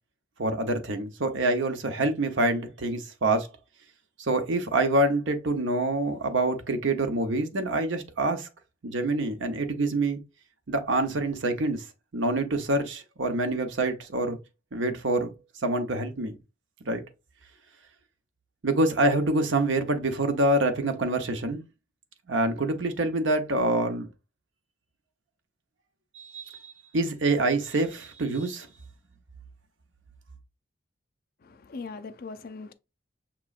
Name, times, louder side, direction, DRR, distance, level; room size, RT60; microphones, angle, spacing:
voice 1, 0.4-3.5 4.2-8.5 8.8-10.2 10.7-11.8 12.1-14.4 14.7-15.3 15.6-16.4 16.8-17.0 18.6-21.6 22.3-24.1 26.1-26.5 26.9-28.7, right 2 dB, 80° right, 0.8 m, -26 dB
voice 2, 31.4-32.7, left 4 dB, 50° left, 0.5 m, -40 dB
6.0 x 3.0 x 2.4 m
head